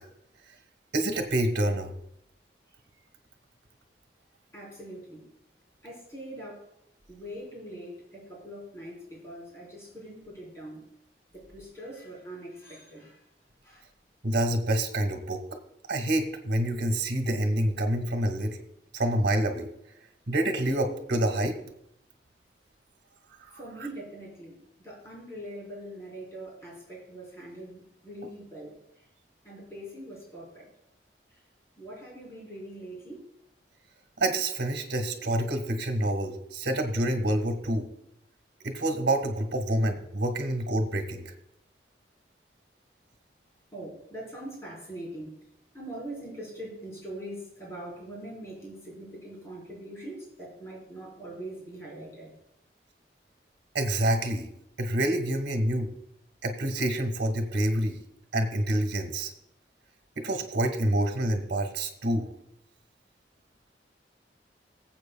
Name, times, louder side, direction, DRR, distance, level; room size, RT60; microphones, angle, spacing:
voice 1, 0.9-1.9 14.2-15.4 15.9-18.6 18.9-19.7 20.3-21.6 23.4-23.6 34.2-37.9 38.6-41.3 53.7-54.5 54.8-55.9 56.4-58.0 58.3-59.3 60.1-62.3, right 1 dB, 75° right, 4 dB, 1.6 m, -27 dB
voice 2, 4.5-5.3 5.8-6.7 7.1-10.9 11.3-13.2 13.6-13.9 23.5-24.6 24.8-28.8 29.4-30.7 31.3-31.4 31.8-33.3 43.7-45.4 45.7-52.3, right 1 dB, 15° left, -5 dB, 4.1 m, -42 dB
21.5 x 8.0 x 2.3 m, 0.78 s
head